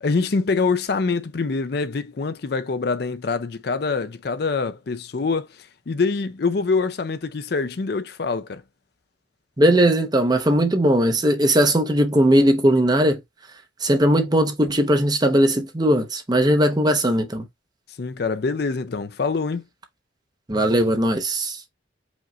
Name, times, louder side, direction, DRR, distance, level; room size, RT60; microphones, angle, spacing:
voice 1, 0.0-5.5 5.9-8.6 18.0-19.6, left 4 dB, 55° left, 0.5 m, -25 dB
voice 2, 9.6-13.2 13.8-17.4 20.5-21.6, right 1 dB, 20° right, 0.7 m, -19 dB
5.1 x 2.5 x 3.1 m
head